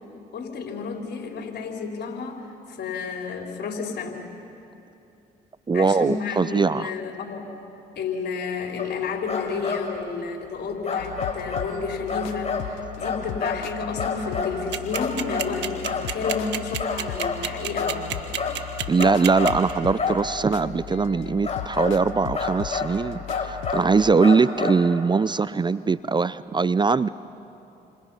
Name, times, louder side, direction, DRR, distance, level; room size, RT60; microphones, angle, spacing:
voice 1, 0.3-4.2 5.7-7.5 8.0-18.0, left 5 dB, 65° left, 1 dB, 4.3 m, -31 dB
voice 2, 5.7-6.9 18.9-27.1, right 4 dB, 25° right, 17 dB, 0.5 m, -21 dB
sound 1, 8.8-8.9 9.3-9.9 10.8-11.7 12.1-12.7 13.0-13.6 14.0-14.6 14.9-15.5 15.8-16.4 16.8-17.4 17.7-18.0 18.3-18.6 19.0-19.6 20.0-20.2 21.4-21.9 22.3-22.9 23.3-23.9 24.2-24.8, left 5 dB, 35° left, 5.6 m, -28 dB
sound 2, 11.0-24.1, left 13 dB, 90° left, 0.6 m, -37 dB
sound 3, 14.7-19.7, right 11 dB, 75° right, 1.5 m, -28 dB
29.5 x 27.5 x 5.7 m, 2.9 s
supercardioid pair, 60°, 19 cm